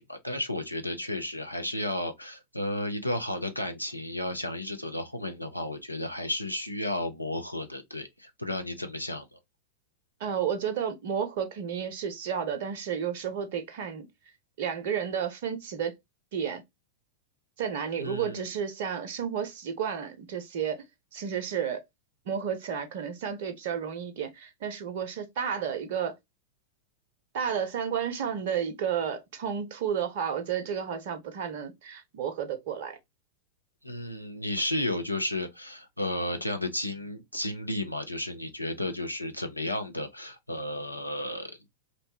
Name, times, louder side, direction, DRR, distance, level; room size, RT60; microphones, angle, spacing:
voice 1, 0.0-9.4 18.0-18.5 33.8-41.6, left 1 dB, 85° left, 0.5 m, -33 dB
voice 2, 10.2-14.1 14.6-15.9 16.3-16.6 17.6-20.8 21.1-21.8 22.3-26.1 27.3-33.0, right 8 dB, 55° right, 0.5 m, -32 dB
2.6 x 2.1 x 2.8 m
figure-of-eight pair, 90°, 0 cm